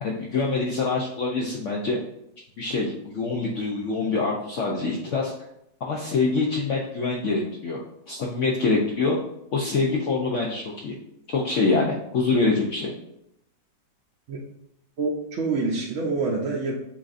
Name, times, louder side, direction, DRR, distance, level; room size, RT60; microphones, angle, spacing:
voice 1, 0.0-2.0 2.6-5.3 5.8-7.8 8.1-9.2 9.5-11.0 11.3-12.9, left 3 dB, 80° left, -1 dB, 0.6 m, -25 dB
voice 2, 15.0-16.8, right 3 dB, 70° right, -3 dB, 0.7 m, -26 dB
7.0 x 2.6 x 2.5 m, 0.79 s
omnidirectional pair, 1.9 m